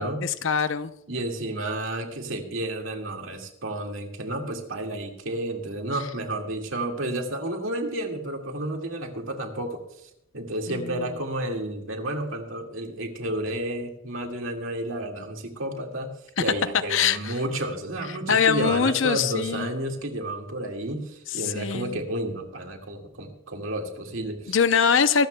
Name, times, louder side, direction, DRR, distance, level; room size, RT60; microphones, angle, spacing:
voice 1, 0.0-0.9 10.7-11.1 16.9-17.4 18.3-19.7 21.3-22.0 24.5-25.3, left 6 dB, 65° left, 12 dB, 0.6 m, -23 dB
voice 2, 1.1-16.1 16.4-24.6, right 1 dB, 70° right, 3 dB, 2.0 m, -31 dB
24.0 x 13.0 x 2.2 m, 0.76 s
head